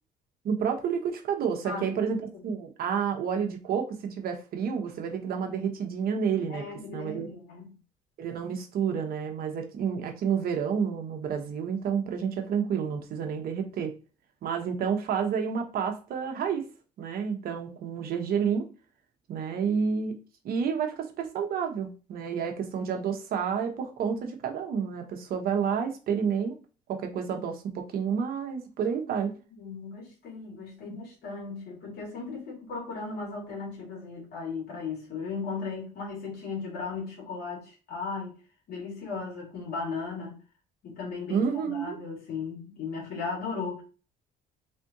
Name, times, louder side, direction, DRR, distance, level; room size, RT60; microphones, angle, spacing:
voice 1, 0.4-6.6 6.9-7.3 8.2-13.9 14.4-16.6 17.0-18.6 19.3-20.2 20.4-26.5 26.9-29.3 41.3-42.0, right 7 dB, 60° right, 1.0 m, -30 dB
voice 2, 1.6-2.0 6.5-7.7 29.6-38.4 38.7-40.4 40.8-43.8, left 4 dB, 65° left, 2.2 m, -36 dB
3.6 x 3.4 x 2.7 m
cardioid pair, 110°, 17 cm